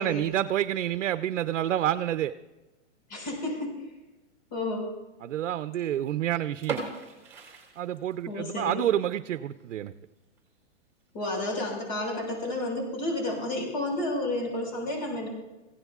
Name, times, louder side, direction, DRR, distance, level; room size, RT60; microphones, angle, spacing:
voice 1, 0.0-2.3 5.2-6.8 7.8-9.9, right 11 dB, 80° right, 11 dB, 0.7 m, -28 dB
voice 2, 3.1-3.7 4.5-4.9 8.3-8.9 11.1-15.3, left 1 dB, 40° left, -1 dB, 6.3 m, -31 dB
sound 1, 6.6-8.5 8.8-8.9 9.4-9.6 10.0-10.1 10.4-10.5 11.2-11.5, right 5 dB, 5° right, 2.3 m, -37 dB
25.0 x 16.5 x 2.4 m, 1.1 s
hypercardioid pair, 175°, 36 cm